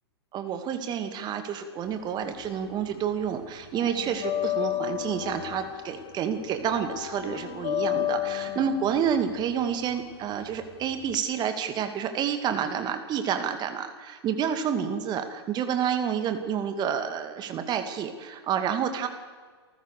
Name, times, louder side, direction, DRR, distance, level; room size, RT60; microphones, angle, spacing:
voice 1, 0.3-19.1, right 8 dB, 30° right, 8 dB, 2.4 m, -29 dB
sound 1, 1.9-3.0 3.2-11.2, left 13 dB, 45° left, 1.6 m, -33 dB
28.5 x 15.0 x 6.7 m, 1.5 s
hypercardioid pair, 115°, 14 cm